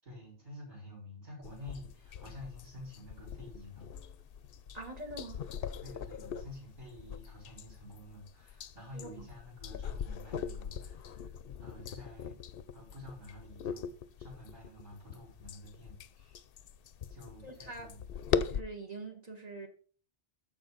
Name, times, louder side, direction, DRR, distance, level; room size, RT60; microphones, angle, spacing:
voice 1, 0.0-3.9 5.8-12.4 12.7-13.9 14.2-16.4 17.1-18.1, left 1 dB, 65° right, 5.0 m, -50 dB
sound 1, 1.4-18.6, left 7 dB, 70° left, 0.7 m, -41 dB
voice 2, 4.7-5.4 8.9-9.2 17.4-17.9 18.3-19.7, right 2 dB, 40° right, 1.5 m, -44 dB
14.0 x 5.0 x 4.0 m
omnidirectional pair, 1.1 m